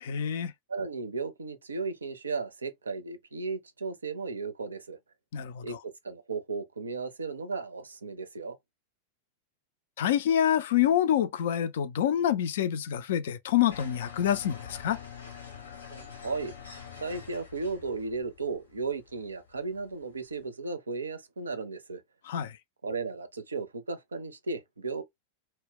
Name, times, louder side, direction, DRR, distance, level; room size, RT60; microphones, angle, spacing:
voice 1, 0.0-0.5 5.3-5.8 10.0-15.0 22.3-22.6, left 10 dB, 55° left, 0.3 m, -27 dB
voice 2, 0.7-5.0 5.6-8.6 15.9-16.5 17.0-22.0 22.8-25.0, right 4 dB, 75° right, 0.4 m, -35 dB
sound 1, 13.7-20.4, left 7 dB, 75° left, 0.8 m, -46 dB
2.1 x 2.0 x 3.6 m
figure-of-eight pair, 90°, 0 cm